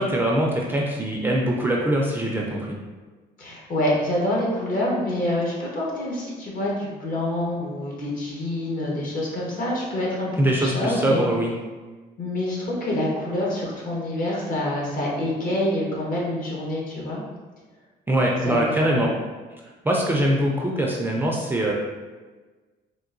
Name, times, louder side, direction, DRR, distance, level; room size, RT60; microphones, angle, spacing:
voice 1, 0.0-2.7 10.4-11.5 18.1-19.1 19.8-21.7, right 1 dB, 10° right, -2 dB, 0.4 m, -22 dB
voice 2, 3.4-11.2 12.2-17.2 18.4-19.1, left 1 dB, 55° left, -4 dB, 1.2 m, -26 dB
3.7 x 2.6 x 2.5 m, 1.3 s
cardioid pair, 110°, 17 cm